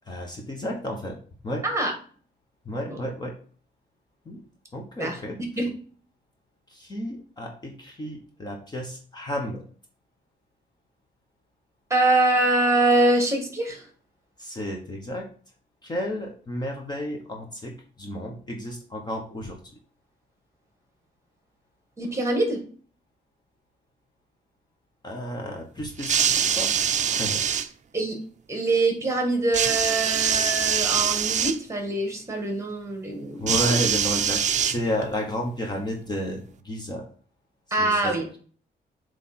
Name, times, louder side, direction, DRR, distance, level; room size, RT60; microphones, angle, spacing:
voice 1, 0.1-1.2 1.4-1.6 2.6-3.3 4.2-4.4 4.7-5.4 6.7-9.6 14.4-15.3 15.8-19.6 25.0-26.7 27.1-27.4 33.3-37.0 37.8-38.2, equal, 25° left, 1 dB, 1.1 m, -32 dB
voice 2, 11.9-13.9 22.0-22.6 27.9-28.2 28.5-33.8 37.7-38.3, right 2 dB, 15° right, 3 dB, 1.7 m, -24 dB
sound 1, 26.0-27.7 29.5-31.6 33.5-35.2 36.1-36.2, right 8 dB, 45° right, 0.5 m, -24 dB
7.8 x 3.3 x 4.3 m, 0.43 s
wide cardioid pair, 150°, 17 cm